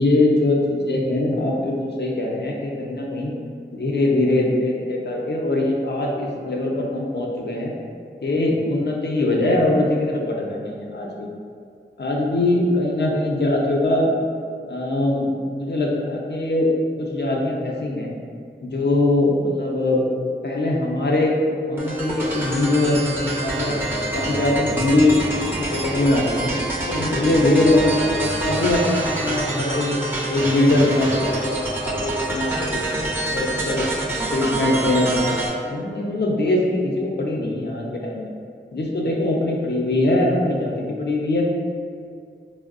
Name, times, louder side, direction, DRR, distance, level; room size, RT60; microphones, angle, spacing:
voice 1, 0.0-3.3 3.7-7.7 8.2-11.3 12.0-14.1 14.7-16.7 17.0-18.1 18.6-20.0 20.4-21.3 21.7-23.8 24.1-25.2 25.6-26.5 26.9-30.0 30.3-32.8 33.3-33.9 34.3-38.3 38.7-41.5, left 2 dB, 60° left, -2 dB, 0.5 m, -22 dB
sound 1, 21.8-35.5, right 2 dB, 10° right, 0.6 m, -26 dB
4.3 x 2.0 x 2.4 m, 2.2 s
wide cardioid pair, 45°, 20 cm